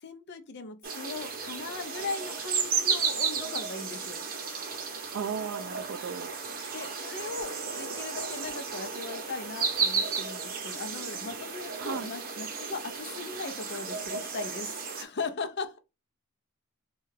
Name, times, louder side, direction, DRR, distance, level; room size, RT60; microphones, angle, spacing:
voice 1, 0.0-4.2 6.7-15.8, left 4 dB, 50° left, 0.5 m, -39 dB
sound 1, 0.8-15.0, right 5 dB, 45° right, 0.7 m, -33 dB
voice 2, 5.1-6.3 11.8-12.1, right 6 dB, 60° right, 0.3 m, -35 dB
3.2 x 2.3 x 3.2 m
head